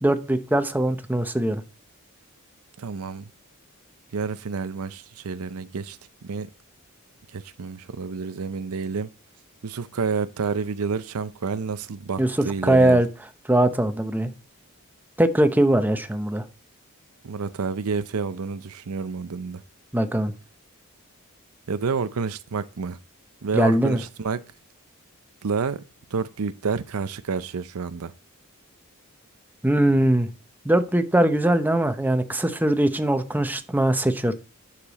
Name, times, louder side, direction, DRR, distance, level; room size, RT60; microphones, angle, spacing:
voice 1, 0.0-1.6 12.2-12.4 12.6-13.1 13.5-14.3 15.2-16.4 19.9-20.3 23.5-24.0 29.6-30.3 30.6-34.3, right 1 dB, 10° right, 0.8 m, -21 dB
voice 2, 2.8-3.3 4.1-6.5 7.3-9.1 9.6-13.0 17.2-19.6 21.7-23.0 23.4-24.4 25.4-25.8 26.1-28.1, right 5 dB, 90° right, 0.6 m, -29 dB
10.0 x 6.7 x 4.1 m
head